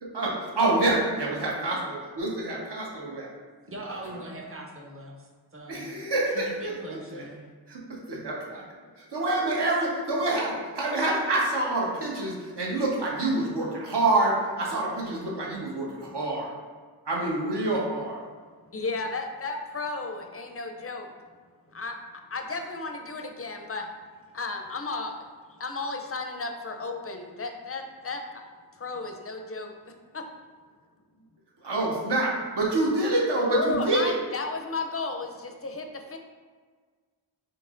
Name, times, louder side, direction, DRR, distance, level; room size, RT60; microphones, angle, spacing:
voice 1, 0.0-3.3 5.7-6.7 7.1-7.2 7.7-8.6 9.1-16.5 17.1-18.2 31.6-34.2, right 2 dB, 65° right, -3 dB, 1.0 m, -27 dB
voice 2, 3.7-5.9 6.3-7.5, right 1 dB, 30° right, -1 dB, 0.7 m, -41 dB
voice 3, 18.7-21.1 21.7-22.0 22.3-23.9 24.3-25.1 25.6-28.2 28.7-30.2 33.5-36.2, left 3 dB, 35° left, 4 dB, 0.4 m, -33 dB
4.4 x 3.0 x 2.5 m, 1.5 s
cardioid pair, 45°, 44 cm